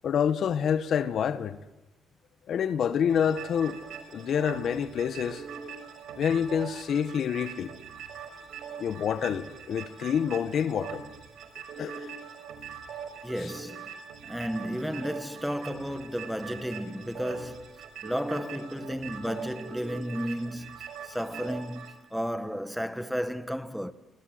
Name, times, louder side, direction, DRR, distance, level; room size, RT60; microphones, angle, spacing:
voice 1, 0.0-1.6 2.5-3.8 4.1-5.4 6.2-7.8 8.8-11.0 11.8-12.1, left 8 dB, 65° left, 1.5 m, -27 dB
sound 1, 3.1-21.9, right 6 dB, 75° right, 5.8 m, -42 dB
voice 2, 13.2-13.9 14.2-23.9, equal, ahead, 1.7 m, -33 dB
28.0 x 26.0 x 8.0 m
cardioid pair, 90°, 0 cm